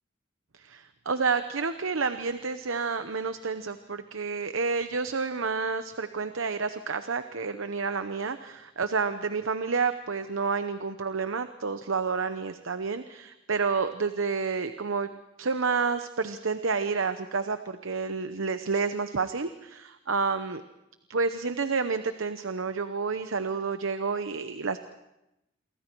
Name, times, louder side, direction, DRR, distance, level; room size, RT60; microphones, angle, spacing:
voice 1, 0.5-15.1 15.4-20.6 21.1-24.8, right 4 dB, 85° right, 10 dB, 0.9 m, -29 dB
28.5 x 23.5 x 4.6 m, 0.91 s
head